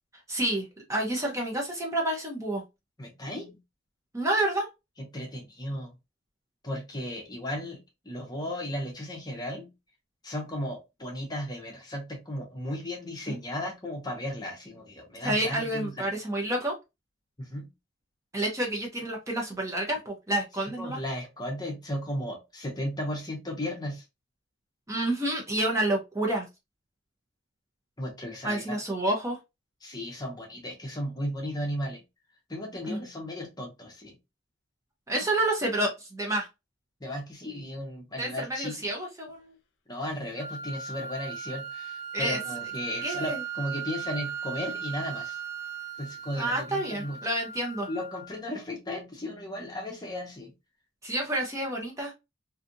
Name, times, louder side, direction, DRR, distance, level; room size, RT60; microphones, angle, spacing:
voice 1, 0.3-2.6 4.1-4.7 15.2-16.7 18.3-21.0 24.9-26.5 28.4-29.4 32.9-33.0 35.1-36.5 38.2-39.5 42.1-42.4 43.0-43.4 46.3-47.9 51.0-52.1, right 1 dB, 15° right, 0 dB, 0.6 m, -29 dB
voice 2, 3.0-3.6 5.1-5.9 6.6-7.8 8.0-9.7 10.2-16.1 17.4-17.7 20.8-24.0 28.0-28.8 29.8-32.0 32.5-34.1 37.0-38.8 39.9-45.4 46.0-47.2 47.9-50.5, left 1 dB, 20° left, 1 dB, 0.7 m, -35 dB
sound 1, 40.4-48.4, right 7 dB, 65° left, 0.5 m, -38 dB
2.6 x 2.4 x 2.6 m, 0.24 s
head